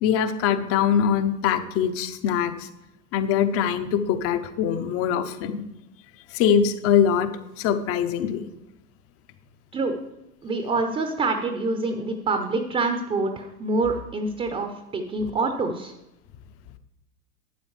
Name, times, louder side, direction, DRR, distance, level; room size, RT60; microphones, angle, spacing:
voice 1, 0.0-2.7 3.1-5.6 6.3-8.4, left 8 dB, 30° left, 11 dB, 0.8 m, -23 dB
voice 2, 10.4-15.9, right 3 dB, 10° right, 5 dB, 0.7 m, -26 dB
12.0 x 9.3 x 3.2 m, 0.93 s
figure-of-eight pair, 100°, 50 cm